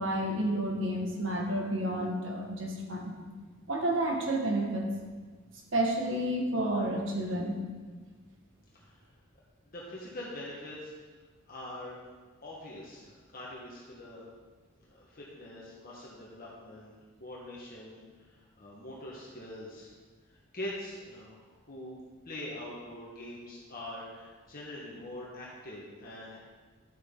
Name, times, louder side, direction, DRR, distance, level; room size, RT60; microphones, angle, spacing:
voice 1, 0.0-3.1 3.7-4.9 5.7-7.6, right 1 dB, 70° right, 0 dB, 1.7 m, -30 dB
voice 2, 9.7-10.9 11.5-12.0 12.4-14.2 14.8-16.9 17.2-18.3 18.6-19.9 20.5-22.0 22.2-26.4, left 1 dB, 45° left, -5 dB, 1.5 m, -43 dB
11.5 x 7.6 x 3.8 m, 1.4 s
head